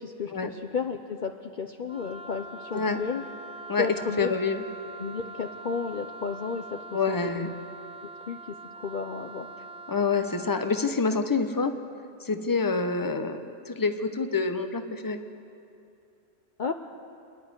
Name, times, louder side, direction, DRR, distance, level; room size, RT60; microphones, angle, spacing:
voice 1, 0.0-3.2 3.8-4.3 5.0-6.8 7.1-7.6 8.3-9.5 16.6-16.7, left 5 dB, 50° left, 5 dB, 0.8 m, -33 dB
Wind instrument woodwind instrument, 1.9-11.0, right 2 dB, 10° right, 0.4 m, -43 dB
voice 2, 4.2-4.6 6.9-7.5 9.9-11.7 12.2-15.2, left 4 dB, 20° left, 8 dB, 1.0 m, -27 dB
28.5 x 10.5 x 9.6 m, 2.6 s
omnidirectional pair, 1.1 m